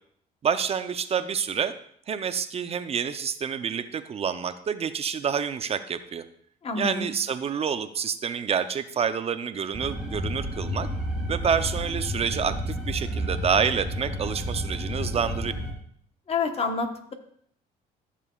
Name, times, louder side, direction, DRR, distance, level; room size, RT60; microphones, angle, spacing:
voice 1, 0.4-1.7 2.1-6.2 6.7-10.9 11.3-15.5, right 7 dB, 35° right, 11 dB, 0.5 m, -28 dB
voice 2, 6.6-7.1 16.3-17.1, left 4 dB, 35° left, 6 dB, 1.1 m, -28 dB
sound 1, 9.7-15.7, equal, ahead, 3.8 m, -31 dB
13.5 x 6.9 x 2.4 m, 0.65 s
cardioid pair, 110°, 17 cm